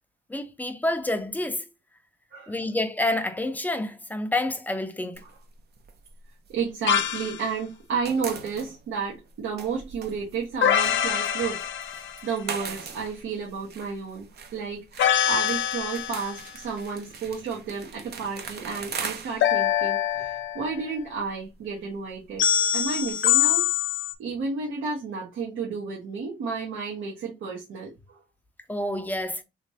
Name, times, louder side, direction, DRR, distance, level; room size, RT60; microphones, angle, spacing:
voice 1, 0.3-1.7 2.5-5.2 28.7-29.4, left 1 dB, 10° left, 0.5 m, -28 dB
sound 1, 5.1-7.4 7.7-23.1, right 6 dB, 55° right, 0.6 m, -41 dB
voice 2, 6.5-14.3 14.5-22.5 22.7-23.7 24.2-28.2, right 5 dB, 80° right, 1.1 m, -32 dB
sound 2, 6.9-7.4 10.6-12.3 15.0-16.4 19.4-20.9 22.4-24.1, left 10 dB, 70° left, 0.5 m, -24 dB
3.1 x 3.1 x 2.7 m
cardioid pair, 90°, 20 cm